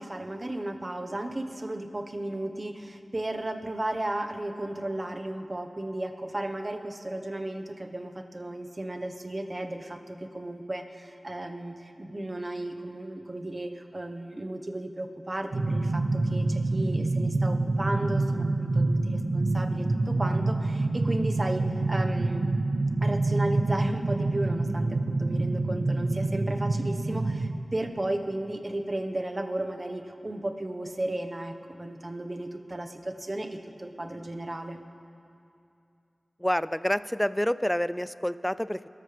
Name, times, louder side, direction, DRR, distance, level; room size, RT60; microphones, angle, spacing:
voice 1, 0.0-22.5 23.0-34.8, right 1 dB, 40° right, 4 dB, 1.3 m, -34 dB
sound 1, 15.5-27.5, right 2 dB, 80° right, 0.9 m, -27 dB
voice 2, 36.4-38.9, equal, 10° left, 15 dB, 0.5 m, -28 dB
25.0 x 14.0 x 3.5 m, 2.6 s
cardioid pair, 45°, 0 cm